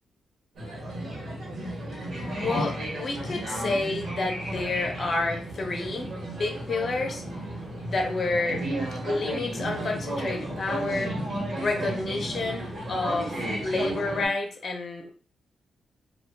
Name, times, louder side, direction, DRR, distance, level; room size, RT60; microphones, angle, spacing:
sound 1, 0.5-14.3, right 1 dB, 75° right, 1.0 m, -33 dB
voice 1, 2.4-7.3 7.9-8.6 9.0-11.3 11.6-15.1, left 3 dB, 55° left, 3 dB, 0.7 m, -29 dB
2.3 x 2.2 x 3.2 m, 0.40 s
supercardioid pair, 60°, 0 cm